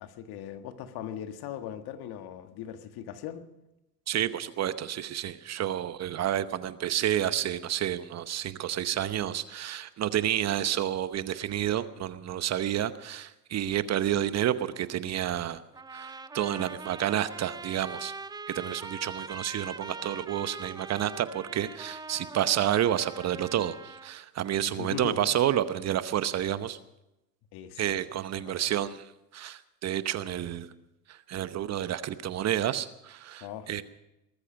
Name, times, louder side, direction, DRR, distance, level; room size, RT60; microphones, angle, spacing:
voice 1, 0.0-3.4 24.6-25.3 27.5-28.0 28.3-28.7 33.4-33.7, left 10 dB, 50° left, 8 dB, 1.8 m, -39 dB
voice 2, 4.1-15.6 15.9-18.1 18.5-26.8 27.8-30.7 31.1-33.8, right 11 dB, 35° right, 13 dB, 0.9 m, -30 dB
sound 1, 15.7-24.1, right 4 dB, 10° right, 0.5 m, -42 dB
19.5 x 14.0 x 5.2 m, 0.91 s
hypercardioid pair, 90°, 47 cm